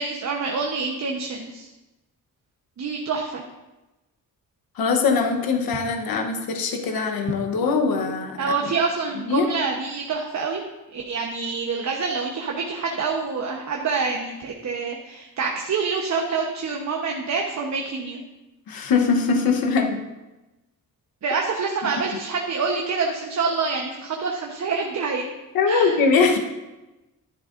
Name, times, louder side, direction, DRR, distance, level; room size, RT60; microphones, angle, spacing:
voice 1, 0.0-1.7 2.8-3.4 8.4-10.6 10.9-18.2 21.2-25.3 25.7-25.9, right 4 dB, 50° right, 1 dB, 1.0 m, -26 dB
voice 2, 4.8-8.7 9.3-9.5 18.7-20.1 25.5-26.4, left 4 dB, 90° left, 4 dB, 1.0 m, -22 dB
11.5 x 10.0 x 2.5 m, 1.0 s
cardioid pair, 115°, 35 cm